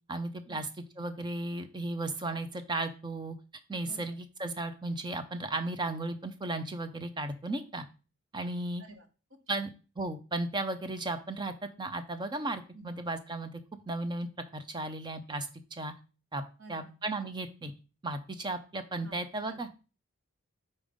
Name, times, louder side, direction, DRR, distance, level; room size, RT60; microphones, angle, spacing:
voice 1, 0.1-0.7 1.0-3.4 3.7-7.8 8.3-8.8 9.5-9.7 10.0-13.5 13.9-14.3 14.5-15.9 16.3-16.4 16.7-17.7 18.0-19.7, right 2 dB, 20° right, 9 dB, 0.5 m, -35 dB
voice 2, 3.8-4.1 8.8-9.7 12.7-12.9 16.6-17.0 19.0-19.2 19.5-19.7, right 2 dB, 55° right, 6 dB, 1.0 m, -52 dB
5.2 x 4.1 x 5.1 m, 0.35 s
head